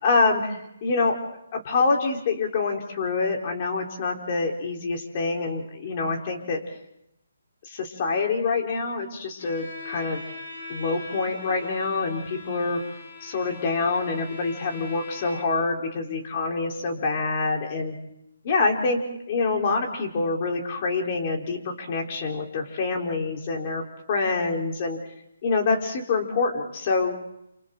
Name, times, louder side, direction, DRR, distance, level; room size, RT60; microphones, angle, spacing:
voice 1, 0.0-1.1 1.5-6.6 7.7-10.2 10.7-12.8 13.2-17.9 18.4-19.0 19.3-23.8 24.1-25.0 25.4-27.2, left 4 dB, 30° left, 1 dB, 3.7 m, -26 dB
Bowed string instrument, 9.4-15.7, left 3 dB, 55° left, 7.2 m, -41 dB
29.5 x 27.5 x 3.8 m, 0.79 s
hypercardioid pair, 165°, 0 cm